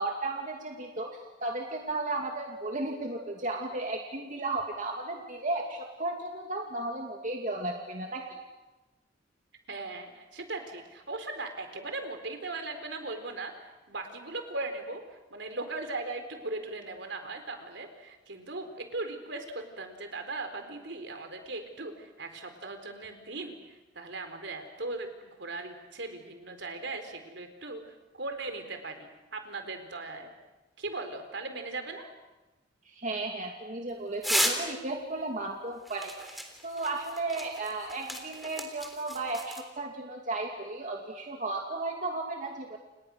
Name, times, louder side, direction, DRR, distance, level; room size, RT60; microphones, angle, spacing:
voice 1, 0.0-8.2 32.9-42.8, right 2 dB, 45° right, 1 dB, 2.6 m, -34 dB
voice 2, 9.7-30.3 30.8-32.1, right 2 dB, 65° right, 7 dB, 4.2 m, -39 dB
sound 1, 34.2-34.7 35.9-39.6, equal, ahead, 3.6 m, -33 dB
30.0 x 29.5 x 6.5 m, 1.1 s
head